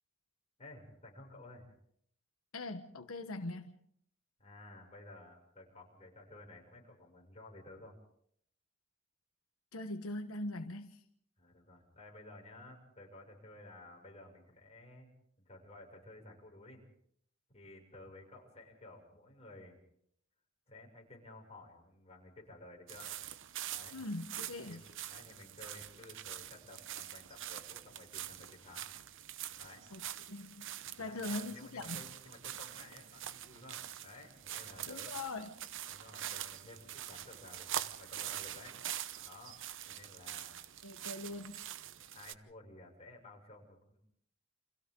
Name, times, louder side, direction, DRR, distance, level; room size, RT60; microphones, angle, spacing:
voice 1, 0.6-1.7 4.4-7.9 11.4-15.1 15.4-16.8 17.5-19.8 20.7-23.2 23.7-24.0 24.7-24.8 25.0-28.9 29.6-29.9 31.0-35.1 35.9-38.8 39.2-40.6 42.1-44.0, left 2 dB, 30° left, 0 dB, 6.7 m, -54 dB
voice 2, 2.5-3.8 9.7-11.0 23.9-24.8 29.9-30.0 30.3-30.7 31.0-32.0 34.9-35.5 40.8-41.9, left 2 dB, 80° left, 6 dB, 1.3 m, -42 dB
sound 1, 22.9-42.3, right 11 dB, 65° right, 0.9 m, -44 dB
30.0 x 26.5 x 3.9 m, 0.68 s
head